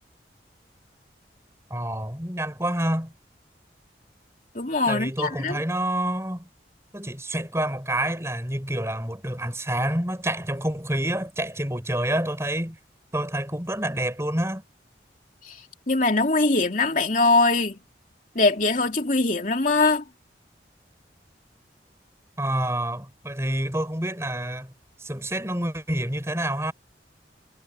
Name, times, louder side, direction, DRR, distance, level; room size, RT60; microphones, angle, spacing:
voice 1, 1.7-3.1 4.9-6.5 6.9-12.8 13.1-14.6 22.4-24.7 25.0-26.7, right 1 dB, 15° right, 5.4 m, -28 dB
voice 2, 4.5-5.6 15.5-15.6 15.9-17.8 18.3-20.0, left 3 dB, 45° left, 2.9 m, -22 dB
head